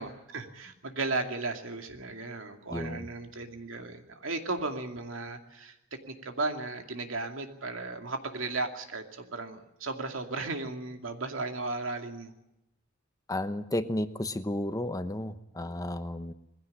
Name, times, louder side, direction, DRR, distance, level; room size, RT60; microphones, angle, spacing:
voice 1, 0.0-5.8 6.1-12.3, right 3 dB, 85° right, 4 dB, 2.5 m, -35 dB
voice 2, 2.7-3.1 13.3-16.3, left 1 dB, 20° left, 10 dB, 0.9 m, -33 dB
21.0 x 16.0 x 10.0 m, 0.86 s
head